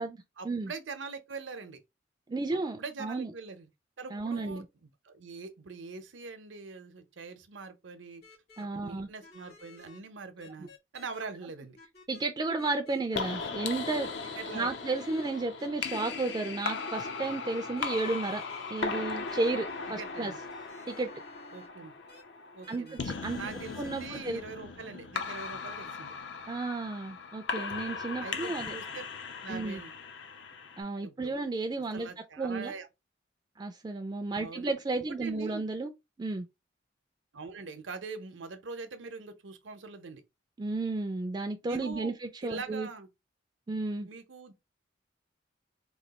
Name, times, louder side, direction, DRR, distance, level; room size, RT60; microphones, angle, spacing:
voice 1, 0.4-1.8 2.8-3.7 4.0-4.6 5.0-8.2 8.7-11.8 14.4-14.7 20.0-20.4 21.5-21.9 22.5-23.0 23.4-26.1 28.2-29.0 29.4-30.0 31.0-31.3 31.9-32.9 34.3-34.8 35.1-35.6 37.3-40.2 41.7-42.1 42.4-43.1 44.0-44.5, right 4 dB, 85° right, 0.7 m, -43 dB
voice 2, 2.3-3.3 4.1-4.7 8.6-9.1 12.1-14.1 14.5-18.4 18.7-20.3 20.9-21.1 22.7-23.5 23.8-24.4 26.5-28.8 29.5-29.8 30.8-32.1 32.4-32.7 33.6-35.9 36.2-36.4 40.6-42.9 43.7-44.1, right 3 dB, 25° right, 0.3 m, -33 dB
sound 1, 8.2-8.6 9.2-10.0 10.4-11.2 11.7-12.2 12.6-13.0 13.4-14.4 14.7-16.1 16.9-21.7 22.1-22.2 22.6-24.1, left 4 dB, 55° left, 1.4 m, -54 dB
sound 2, 13.1-30.8, left 4 dB, 70° left, 0.6 m, -38 dB
3.1 x 2.3 x 4.0 m
head